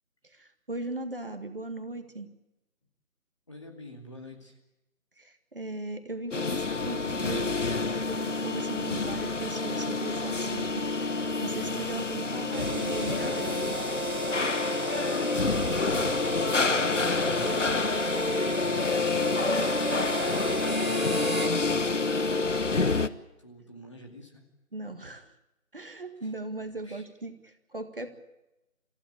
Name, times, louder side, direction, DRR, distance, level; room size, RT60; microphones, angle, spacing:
voice 1, 0.2-2.3 5.2-7.6 8.1-13.8 24.7-25.3 25.7-28.1, right 2 dB, 40° right, 7 dB, 1.9 m, -38 dB
voice 2, 3.5-4.6 11.6-11.9 15.1-17.8 23.4-24.4 26.2-26.3 26.8-27.1, equal, 20° left, 1 dB, 2.4 m, -47 dB
sound 1, 6.3-23.1, left 3 dB, 60° left, 1.2 m, -28 dB
Harmonica, 12.5-21.6, right 4 dB, 85° right, 1.3 m, -35 dB
27.5 x 15.5 x 8.6 m, 0.95 s
figure-of-eight pair, 175°, 42 cm